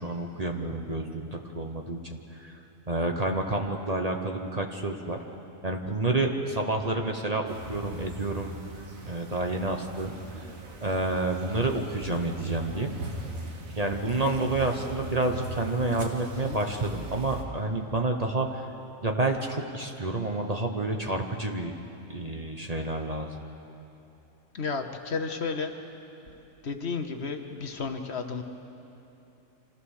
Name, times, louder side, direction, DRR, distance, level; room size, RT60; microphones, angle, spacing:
voice 1, 0.0-2.6 2.9-5.2 5.6-8.5 9.1-10.5 10.8-12.9 13.8-18.7 19.0-21.7 22.1-23.4, right 2 dB, 30° right, 3 dB, 1.0 m, -29 dB
sound 1, 7.5-17.4, right 2 dB, 80° right, 2.0 m, -40 dB
voice 2, 24.5-25.7 26.6-28.4, left 4 dB, 55° left, 6 dB, 1.2 m, -32 dB
27.0 x 15.0 x 6.5 m, 2.9 s
omnidirectional pair, 1.4 m